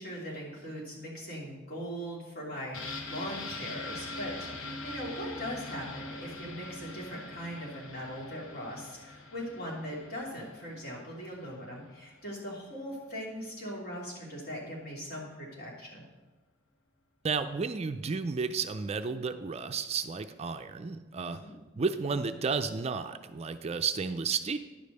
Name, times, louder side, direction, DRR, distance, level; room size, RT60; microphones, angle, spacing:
voice 1, 0.0-16.1 21.2-21.5, equal, 50° left, -3 dB, 2.9 m, -40 dB
sound 1, 2.7-12.4 12.7-12.8, left 2 dB, 90° left, 1.0 m, -43 dB
voice 2, 17.2-21.4 21.8-24.6, right 5 dB, 35° right, 9 dB, 0.4 m, -32 dB
10.5 x 5.2 x 6.6 m, 1.2 s
head